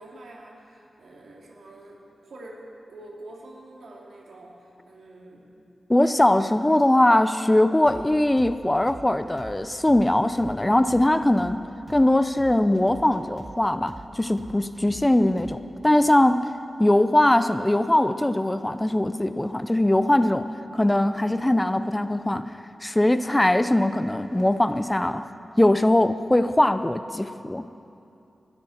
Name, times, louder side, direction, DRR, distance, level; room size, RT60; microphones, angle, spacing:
voice 1, 0.0-5.5, right 1 dB, 80° right, -2 dB, 2.7 m, -46 dB
voice 2, 5.9-11.6 11.9-16.5 16.8-22.5 22.8-25.3 25.6-27.6, left 1 dB, 15° left, 11 dB, 0.5 m, -21 dB
sound 1, 7.9-15.8, right 2 dB, 30° right, 0.9 m, -44 dB
20.0 x 12.5 x 4.3 m, 2.7 s
cardioid pair, 65°, 0 cm